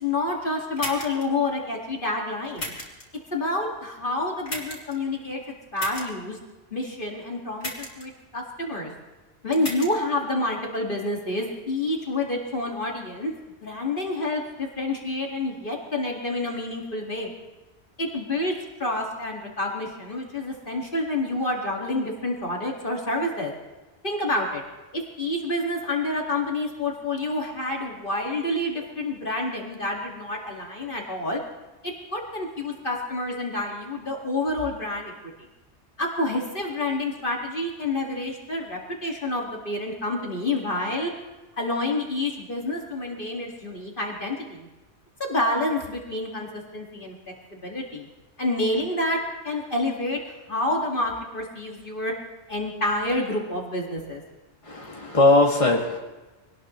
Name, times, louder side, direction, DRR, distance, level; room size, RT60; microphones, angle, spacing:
voice 1, 0.0-2.7 3.3-5.4 5.7-6.4 6.7-8.9 9.4-13.3 13.6-17.3 18.0-18.5 18.8-23.5 24.0-24.6 24.9-31.4 31.8-35.1 36.0-41.1 41.6-44.7 45.2-46.5 46.7-47.1 47.5-48.1 48.4-49.2 49.4-50.2 50.5-52.1 52.5-54.2, left 2 dB, 50° left, -1 dB, 2.3 m, -28 dB
sound 1, 0.8-1.2 2.6-3.0 4.5-4.9 5.8-6.1 7.6-8.0 9.5-9.9, left 1 dB, 65° left, 3.5 m, -33 dB
voice 2, 54.6-56.0, left 2 dB, 30° left, -1 dB, 2.2 m, -20 dB
24.5 x 19.0 x 3.2 m, 1.1 s
omnidirectional pair, 1.2 m